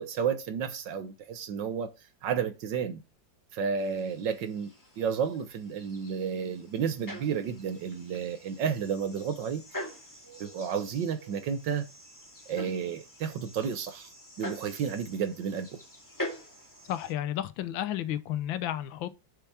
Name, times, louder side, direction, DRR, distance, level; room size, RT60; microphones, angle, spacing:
voice 1, 0.0-1.9 2.2-3.0 3.5-4.7 5.0-9.6 10.4-11.9 12.5-14.1 14.4-15.8, right 7 dB, 70° right, 1.6 m, -31 dB
sound 1, 3.8-17.1, equal, 10° left, 1.9 m, -45 dB
voice 2, 16.8-19.1, left 12 dB, 80° left, 1.5 m, -32 dB
6.8 x 5.8 x 4.8 m
omnidirectional pair, 2.1 m